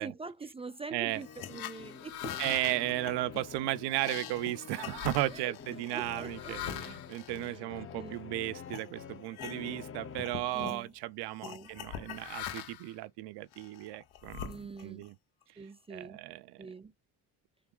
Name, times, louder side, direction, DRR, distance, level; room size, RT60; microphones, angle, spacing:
voice 1, 0.0-2.6 5.3-5.5 5.9-6.5 7.4-8.2 10.5-10.9 11.4-11.7 14.4-15.1 15.6-16.2 16.6-16.9, right 4 dB, 15° right, 0.3 m, -44 dB
sound 1, 1.1-8.2 8.7-8.9 9.2-9.9 10.1-10.8 11.4-12.9 13.5-15.1, left 10 dB, 70° left, 0.8 m, -43 dB
sound 2, 1.1-10.9, left 7 dB, 35° left, 0.7 m, -48 dB
voice 2, 2.4-15.1 15.9-16.7, right 16 dB, 80° right, 0.6 m, -35 dB
3.6 x 2.2 x 3.6 m
cardioid pair, 90°, 40 cm